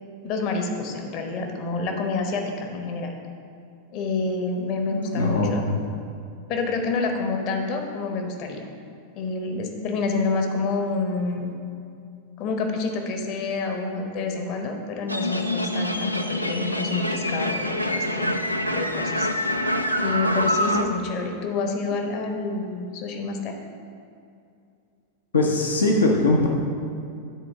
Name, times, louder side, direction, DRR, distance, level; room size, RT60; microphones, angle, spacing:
voice 1, 0.2-3.1 3.9-5.6 6.5-8.7 9.2-11.5 12.4-18.3 18.6-19.3 20.0-23.5, left 3 dB, 40° left, 3 dB, 1.0 m, -28 dB
voice 2, 4.9-5.8 25.3-26.5, left 2 dB, 70° left, 0 dB, 0.8 m, -21 dB
sound 1, 15.1-20.8, left 1 dB, 90° left, 0.4 m, -25 dB
9.2 x 4.3 x 5.9 m, 2.5 s
figure-of-eight pair, 90°, 0 cm